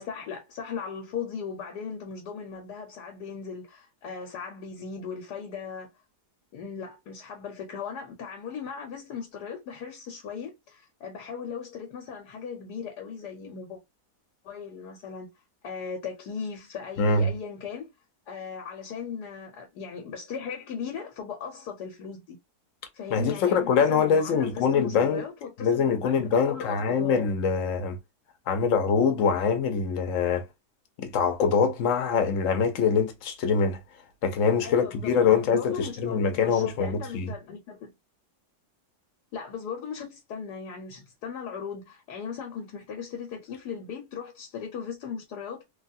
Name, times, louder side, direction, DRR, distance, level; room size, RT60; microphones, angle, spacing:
voice 1, 0.0-5.9 6.5-13.8 14.4-15.3 15.6-17.9 18.3-22.4 22.9-27.3 34.6-37.9 39.3-45.6, left 6 dB, 80° left, 1.3 m, -38 dB
voice 2, 17.0-17.3 23.1-25.2 25.6-28.0 28.5-30.5 31.0-33.8 34.2-37.3, left 6 dB, 60° left, 1.0 m, -24 dB
3.3 x 2.3 x 2.5 m
omnidirectional pair, 1.7 m